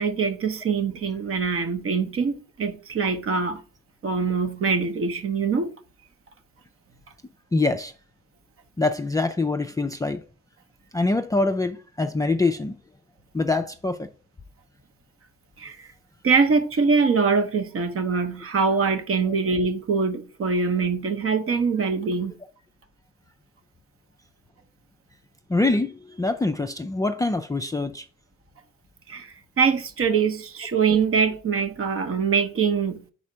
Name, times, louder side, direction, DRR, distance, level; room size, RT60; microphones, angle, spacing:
voice 1, 0.0-3.6 4.0-5.7 15.6-15.9 16.2-22.4 29.1-33.1, right 5 dB, 45° right, 0.9 m, -23 dB
voice 2, 7.5-7.9 8.8-10.2 10.9-12.8 13.3-14.1 19.2-19.3 25.5-28.1, left 3 dB, 10° left, 0.3 m, -24 dB
4.9 x 4.3 x 5.5 m
cardioid pair, 90°, 30 cm